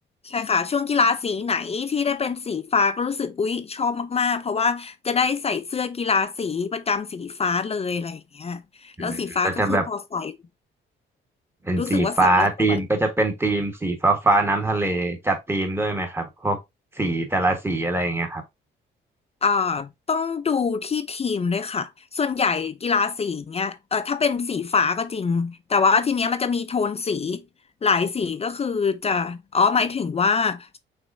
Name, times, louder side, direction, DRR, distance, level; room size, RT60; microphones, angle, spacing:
voice 1, 0.2-10.4 11.8-12.8 19.4-27.4 27.8-30.8, left 5 dB, 30° left, 0.5 m, -24 dB
voice 2, 9.0-9.8 11.6-16.6 17.0-18.4, right 2 dB, 10° right, 1.4 m, -23 dB
5.9 x 3.2 x 2.7 m
cardioid pair, 90°, 20 cm